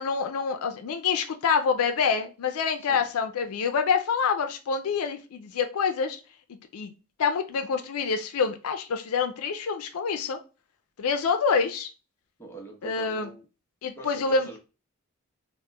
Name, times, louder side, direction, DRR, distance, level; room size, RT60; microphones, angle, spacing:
voice 1, 0.0-6.2 6.5-6.9 7.2-10.4 11.0-11.9 12.8-13.3 13.8-14.5, left 5 dB, 80° left, 0.4 m, -26 dB
voice 2, 12.4-13.4 14.0-14.6, right 1 dB, 10° left, 0.8 m, -43 dB
2.9 x 2.1 x 3.3 m
head